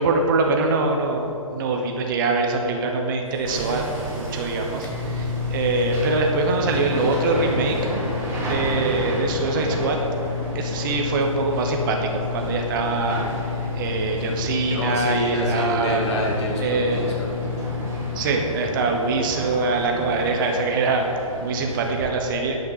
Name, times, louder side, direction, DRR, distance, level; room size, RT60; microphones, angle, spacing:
voice 1, 0.0-7.8 8.4-10.0 10.5-13.3 13.7-16.0 16.6-17.1 18.1-22.6, right 3 dB, 35° right, 2 dB, 1.2 m, -23 dB
Microwave oven, 3.3-18.3, left 7 dB, 10° left, 1.1 m, -31 dB
Hammer, 3.5-22.1, right 1 dB, 15° right, 2.4 m, -32 dB
voice 2, 14.2-17.7, left 1 dB, 50° left, -2 dB, 2.7 m, -28 dB
11.0 x 5.7 x 7.3 m, 2.8 s
figure-of-eight pair, 135°, 18 cm